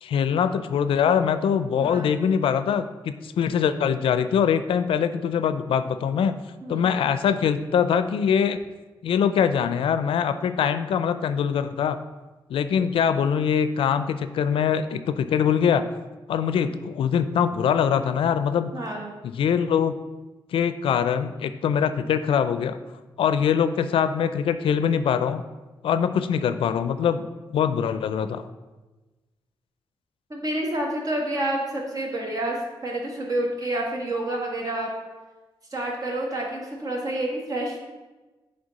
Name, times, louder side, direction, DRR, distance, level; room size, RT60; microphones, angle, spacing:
voice 1, 0.0-6.3 6.7-8.6 9.0-12.0 12.5-15.8 16.3-18.7 19.3-19.9 20.5-22.8 23.2-25.4 25.8-27.3 27.5-28.5, left 7 dB, 85° left, 11 dB, 0.4 m, -23 dB
voice 2, 1.8-2.1 6.6-6.9 18.7-19.1 30.3-32.6 32.8-34.9 35.7-37.8, right 1 dB, 40° right, -1 dB, 1.5 m, -28 dB
8.8 x 3.4 x 4.1 m, 1.2 s
wide cardioid pair, 120°, 9 cm